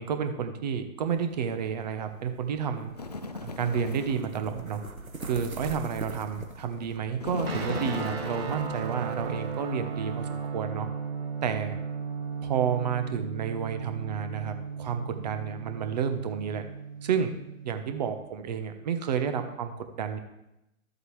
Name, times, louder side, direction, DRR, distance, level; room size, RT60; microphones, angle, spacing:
voice 1, 0.0-2.9 3.4-4.8 5.3-10.9 11.4-11.8 12.4-16.6 17.0-17.3 17.6-20.2, right 7 dB, 30° right, 8 dB, 1.0 m, -30 dB
sound 1, 1.0-10.5, right 3 dB, 85° right, 1.3 m, -44 dB
Bird, 2.9-4.3 7.2-9.7, left 3 dB, 35° left, 0.4 m, -38 dB
sound 2, 7.4-17.8, right 6 dB, 45° right, 1.6 m, -36 dB
13.0 x 7.9 x 3.2 m, 0.87 s
figure-of-eight pair, 135°, 41 cm